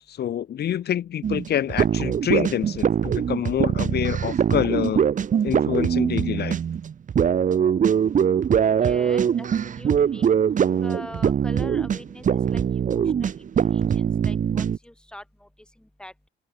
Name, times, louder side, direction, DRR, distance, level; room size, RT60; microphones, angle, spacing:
voice 1, 0.1-5.0 5.4-6.6, left 10 dB, 55° left, 0.7 m, -26 dB
sound 1, 1.2-14.8, right 8 dB, 40° right, 0.7 m, -22 dB
voice 2, 8.8-16.3, left 1 dB, 5° left, 2.1 m, -44 dB
open air
cardioid pair, 90°, 20 cm